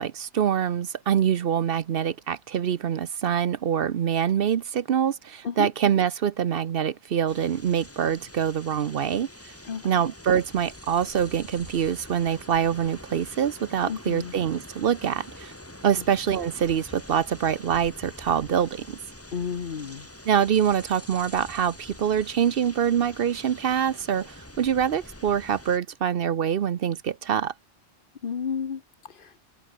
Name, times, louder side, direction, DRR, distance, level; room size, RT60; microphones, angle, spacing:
voice 1, 0.0-9.3 9.8-15.5 15.8-19.0 20.3-27.5, right 8 dB, 60° right, 0.8 m, -25 dB
sound 1, 7.3-25.8, left 1 dB, 10° left, 2.4 m, -45 dB
voice 2, 9.6-10.0 13.9-14.3 16.0-16.1 19.3-20.1 28.2-29.4, left 6 dB, 50° left, 1.1 m, -32 dB
omnidirectional pair, 1.1 m